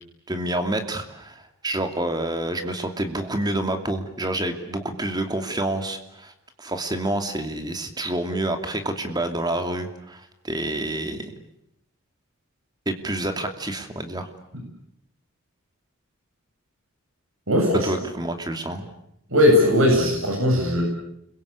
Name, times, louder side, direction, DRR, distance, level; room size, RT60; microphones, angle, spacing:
voice 1, 0.3-6.3 6.6-11.3 12.9-14.3 17.8-18.9, right 1 dB, 20° right, 6 dB, 2.8 m, -28 dB
voice 2, 17.5-17.9 19.3-20.8, left 1 dB, 70° right, 1 dB, 7.4 m, -18 dB
29.5 x 22.5 x 8.5 m, 0.78 s
head